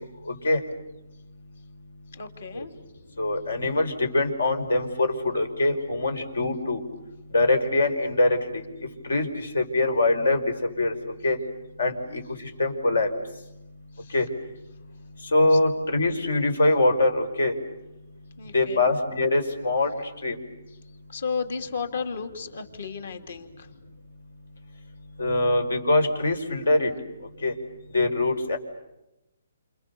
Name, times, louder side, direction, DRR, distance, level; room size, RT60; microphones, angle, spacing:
voice 1, 0.3-0.6 2.5-2.7 3.2-6.8 7.3-8.6 9.0-10.4 10.8-10.9 11.2-11.4 11.8-12.2 12.6-13.1 14.1-14.3 15.3-17.5 18.5-19.9 20.2-20.4 25.2-26.9 27.4-27.5 27.9-28.6, left 2 dB, 90° left, 8 dB, 5.2 m, -23 dB
voice 2, 2.1-2.7 14.0-14.1 15.5-15.6 18.4-18.8 21.1-23.7, left 5 dB, 65° left, 7 dB, 3.1 m, -33 dB
29.5 x 28.0 x 7.0 m, 0.91 s
hypercardioid pair, 160°, 0 cm